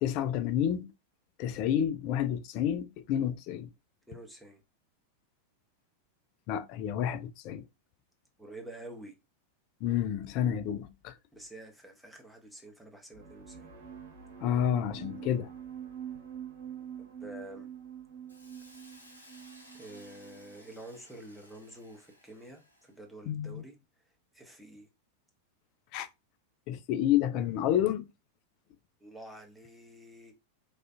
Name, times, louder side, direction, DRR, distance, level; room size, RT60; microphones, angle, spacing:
voice 1, 0.0-0.9 1.4-3.7 6.5-7.7 9.8-11.2 14.4-15.5 23.3-23.6 25.9-26.1 26.7-28.1, left 10 dB, 40° left, 0.3 m, -29 dB
voice 2, 4.1-4.6 8.4-9.2 11.3-13.7 17.0-17.7 19.7-23.8 24.0-24.9 29.0-30.5, right 1 dB, ahead, 0.8 m, -48 dB
sound 1, 13.1-20.7, right 9 dB, 65° right, 1.0 m, -45 dB
Hiss, 18.3-23.0, left 1 dB, 85° left, 0.7 m, -57 dB
3.3 x 2.4 x 2.4 m
figure-of-eight pair, 90°, 0 cm